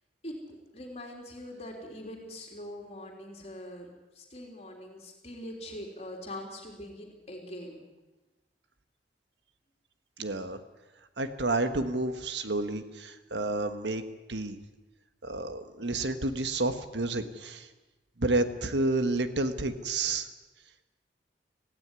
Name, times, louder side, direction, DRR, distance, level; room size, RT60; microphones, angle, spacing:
voice 1, 0.2-3.9 4.1-7.8, left 1 dB, 35° left, 1 dB, 3.3 m, -43 dB
voice 2, 10.2-10.6 11.2-14.0 14.3-14.6 15.2-17.7 18.2-20.3, right 2 dB, 85° right, 9 dB, 1.5 m, -30 dB
17.5 x 16.0 x 9.7 m, 1.1 s
head